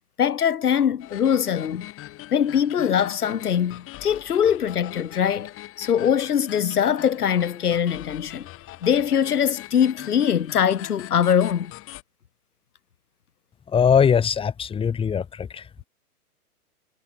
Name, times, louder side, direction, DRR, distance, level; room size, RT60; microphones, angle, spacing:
voice 1, 0.2-1.9 2.3-8.5 8.8-11.7, left 8 dB, 80° left, 1.4 m, -22 dB
sound 1, 1.0-12.0, left 16 dB, 30° left, 7.6 m, -42 dB
voice 2, 13.7-15.6, left 7 dB, 10° left, 1.8 m, -21 dB
hypercardioid pair, 120°, 45 cm